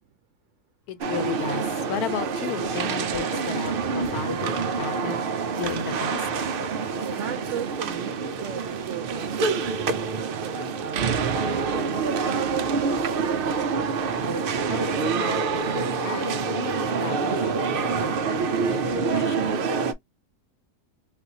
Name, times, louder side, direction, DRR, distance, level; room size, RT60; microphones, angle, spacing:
voice 1, 0.9-5.3 5.6-6.3 14.7-19.7, left 7 dB, 85° left, 1.2 m, -35 dB
sound 1, 1.0-19.9, right 5 dB, 80° right, 0.5 m, -26 dB
voice 2, 7.1-12.9, right 9 dB, 65° right, 0.8 m, -38 dB
3.6 x 2.5 x 2.7 m
omnidirectional pair, 1.6 m